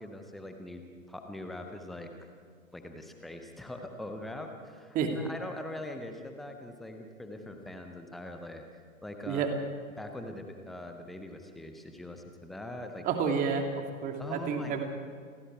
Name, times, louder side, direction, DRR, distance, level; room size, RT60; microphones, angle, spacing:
voice 1, 0.0-2.1 2.7-8.6 9.0-9.5 10.0-13.1 14.2-14.8, left 1 dB, ahead, 5 dB, 0.5 m, -42 dB
voice 2, 13.0-14.8, right 6 dB, 20° right, 4 dB, 2.7 m, -30 dB
29.5 x 22.5 x 4.7 m, 2.1 s
figure-of-eight pair, 125°, 41 cm